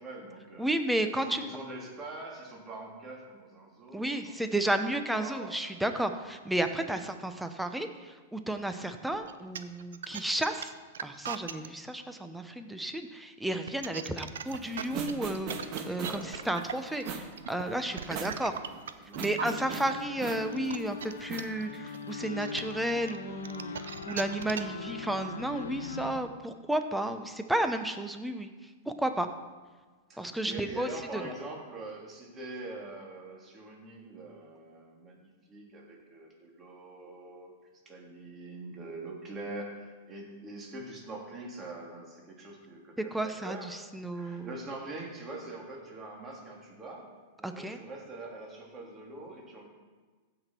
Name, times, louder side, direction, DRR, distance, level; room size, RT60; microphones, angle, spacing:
voice 1, 0.0-0.7 1.1-5.5 16.0-17.5 17.9-18.6 19.0-19.3 19.6-20.0 23.7-23.9 30.1-37.5 37.8-43.7 44.1-47.1 47.4-49.7, right 2 dB, 25° right, -2 dB, 3.1 m, -44 dB
voice 2, 0.6-1.4 3.9-10.7 11.0-18.5 19.1-28.5 28.9-29.3 30.2-31.3 43.1-44.5 47.4-47.8, right 1 dB, 5° right, 7 dB, 0.9 m, -32 dB
sound 1, 9.1-11.7 13.5-19.7 20.2-24.8, right 8 dB, 80° right, 0.6 m, -39 dB
sound 2, 14.5-22.1, right 5 dB, 45° right, 1.6 m, -40 dB
sound 3, 19.4-26.2, left 6 dB, 80° left, 0.6 m, -41 dB
15.5 x 6.2 x 4.6 m, 1.4 s
hypercardioid pair, 115°, 0 cm